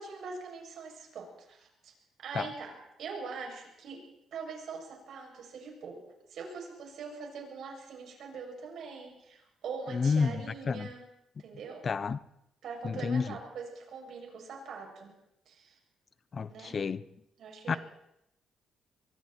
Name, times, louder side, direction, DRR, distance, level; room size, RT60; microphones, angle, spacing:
voice 1, 0.0-1.9 2.2-2.7 3.0-4.0 4.3-6.0 6.3-11.0 11.4-11.8 12.6-15.1 15.5-15.8 16.5-16.8 17.4-17.8, right 5 dB, 70° right, 7.7 m, -42 dB
voice 2, 9.9-10.9 11.8-12.2 12.8-13.3 16.3-17.0 17.7-17.8, left 5 dB, 40° left, 0.8 m, -30 dB
24.0 x 24.0 x 4.6 m
cardioid pair, 90°, 0 cm